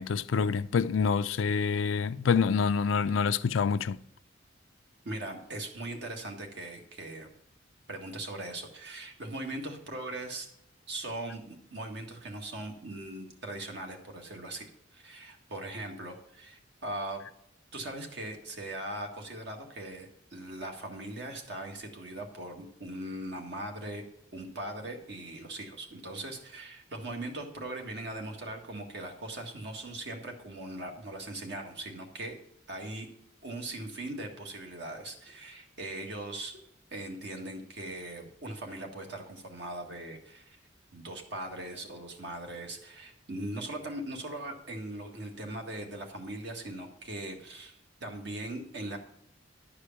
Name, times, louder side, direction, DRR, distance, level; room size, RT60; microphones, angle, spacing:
voice 1, 0.0-4.0, left 6 dB, 85° left, 0.4 m, -27 dB
voice 2, 5.1-7.3 7.9-10.5 10.9-17.2 17.7-24.0 24.3-32.4 32.7-33.1 33.4-36.6 36.9-40.6 40.9-49.0, right 1 dB, 60° right, 1.8 m, -40 dB
11.5 x 4.9 x 7.2 m
head